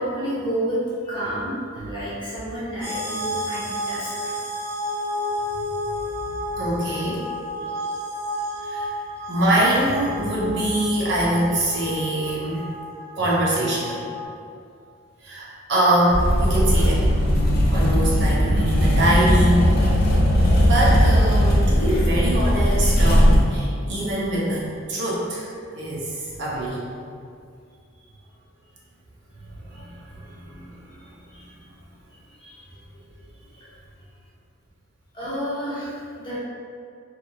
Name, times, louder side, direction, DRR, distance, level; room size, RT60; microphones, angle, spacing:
voice 1, 0.0-4.4 27.9-28.0 29.7-29.8 30.2-30.3 31.3-31.5 32.3-32.6 32.9-33.0 33.5-33.7 35.1-36.4, equal, 25° left, -10 dB, 0.8 m, -30 dB
sound 1, 2.8-14.3, left 1 dB, 15° right, 0.6 m, -31 dB
voice 2, 6.6-7.2 8.6-8.9 9.3-12.7 13.2-14.0 15.2-19.7 20.6-25.5 25.7-26.8 29.6-30.9, right 1 dB, 55° right, -6 dB, 0.6 m, -24 dB
sound 2, 16.1-23.4, equal, 50° left, 0.6 m, -18 dB
2.8 x 2.4 x 2.6 m, 2.3 s
head